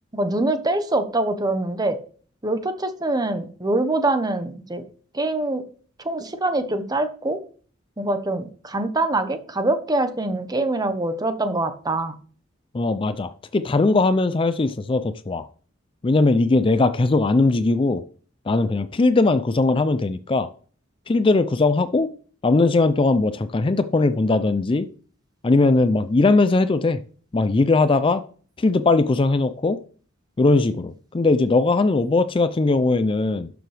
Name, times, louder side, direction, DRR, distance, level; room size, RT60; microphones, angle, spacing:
voice 1, 0.1-2.0 2.4-4.8 5.1-5.6 6.0-7.4 8.0-12.2, right 2 dB, 20° right, 9 dB, 1.0 m, -24 dB
voice 2, 12.7-15.5 16.0-18.0 18.5-20.5 21.1-22.1 22.4-24.9 25.4-27.0 27.3-28.2 28.6-29.8 30.4-33.5, left 3 dB, 25° left, 12 dB, 0.4 m, -19 dB
12.0 x 7.0 x 3.4 m, 0.43 s
head